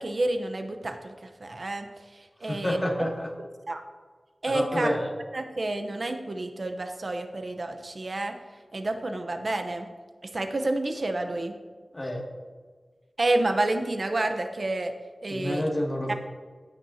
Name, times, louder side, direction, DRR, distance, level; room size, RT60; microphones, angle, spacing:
voice 1, 0.0-1.9 2.1-2.8 3.7-3.8 4.4-4.9 5.3-8.4 8.7-9.9 10.2-11.5 13.2-14.9 15.2-15.6 16.1-16.2, right 2 dB, 55° right, 6 dB, 0.9 m, -29 dB
voice 2, 2.4-3.3 4.5-5.1 11.9-12.3 15.3-16.1, left 1 dB, 30° left, -1 dB, 2.3 m, -29 dB
17.0 x 9.3 x 2.8 m, 1.5 s
wide cardioid pair, 70°, 0 cm